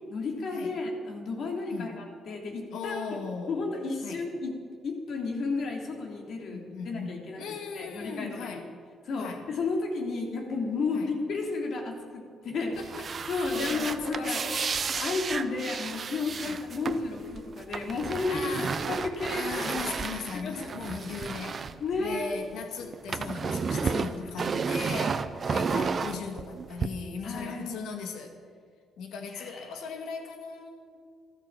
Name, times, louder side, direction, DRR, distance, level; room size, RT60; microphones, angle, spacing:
voice 1, 0.1-3.2 3.5-4.5 4.8-8.6 9.0-12.8 13.3-14.4 14.9-18.5 18.8-19.7 20.3-20.7 21.8-22.4 22.8-22.9 23.2-23.5 23.7-23.9 24.2-24.3 27.2-27.8 29.3-29.7, left 3 dB, 65° left, 1 dB, 3.2 m, -33 dB
voice 2, 2.7-3.6 4.0-4.2 6.5-8.7 9.2-9.5 10.9-11.1 12.6-13.1 13.5-15.0 16.4-16.6 18.3-18.7 19.3-21.6 22.0-28.4 29.0-31.0, left 5 dB, 85° left, 5 dB, 2.0 m, -38 dB
sound 1, 12.7-22.5 22.8-26.9, right 5 dB, 45° right, 0.8 m, -32 dB
14.0 x 12.5 x 7.4 m, 2.1 s
cardioid pair, 90°, 0 cm